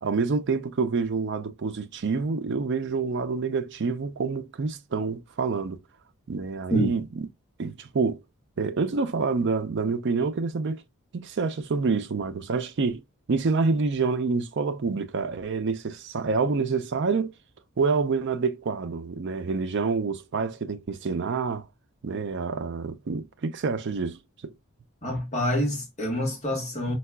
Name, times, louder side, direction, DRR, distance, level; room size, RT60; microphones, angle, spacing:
voice 1, 0.0-5.8 6.3-7.3 7.6-8.2 8.6-10.8 11.1-13.0 13.3-17.3 17.8-21.6 22.0-24.5, right 4 dB, 55° right, 0.4 m, -27 dB
voice 2, 25.0-26.9, equal, 30° left, 1.2 m, -26 dB
4.5 x 2.3 x 2.2 m
head